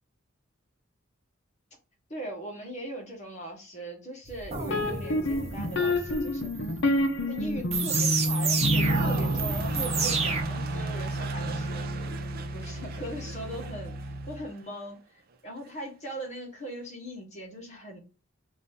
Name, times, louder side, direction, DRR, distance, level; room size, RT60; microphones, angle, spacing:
voice 1, 2.1-6.5 7.3-11.8 12.5-13.9 14.3-18.0, equal, 35° left, 1.3 m, -39 dB
sound 1, 4.3-10.4, right 4 dB, 30° right, 0.8 m, -31 dB
sound 2, 4.6-14.4, equal, 60° left, 0.8 m, -29 dB
sound 3, 8.7-15.0 15.3-15.8, right 6 dB, 45° right, 0.5 m, -42 dB
4.1 x 2.7 x 3.5 m
head